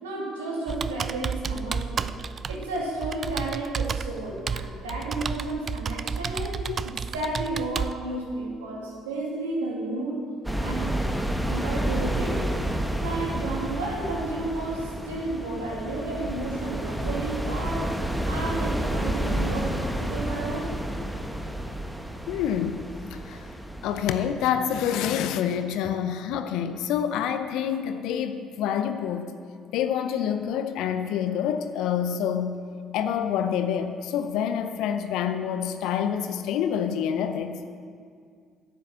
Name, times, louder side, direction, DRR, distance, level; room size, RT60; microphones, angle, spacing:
voice 1, 0.0-2.1 2.5-6.6 6.8-10.2 10.6-11.0 11.5-12.6 13.0-18.0 18.3-20.7, right 2 dB, 85° right, -3 dB, 2.3 m, -32 dB
Computer keyboard, 0.7-7.9, right 6 dB, 45° right, 0.4 m, -32 dB
sound 1, 10.4-24.4, right 1 dB, 5° right, 1.1 m, -30 dB
voice 2, 22.3-22.8 23.1-23.5 23.8-29.3 29.7-32.6 32.9-37.6, left 8 dB, 70° left, 9 dB, 0.7 m, -27 dB
10.5 x 8.6 x 7.4 m, 2.2 s
hypercardioid pair, 50°, 0 cm